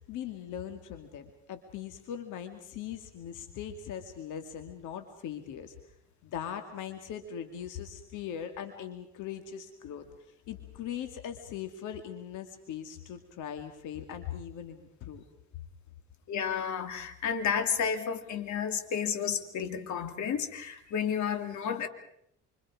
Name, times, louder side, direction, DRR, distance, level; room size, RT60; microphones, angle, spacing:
voice 1, 0.1-5.8 6.2-15.2, left 9 dB, 90° left, 7 dB, 2.4 m, -40 dB
voice 2, 16.3-21.9, left 7 dB, 70° left, 7 dB, 2.7 m, -31 dB
28.0 x 26.0 x 4.9 m, 0.71 s
cardioid pair, 90°, 30 cm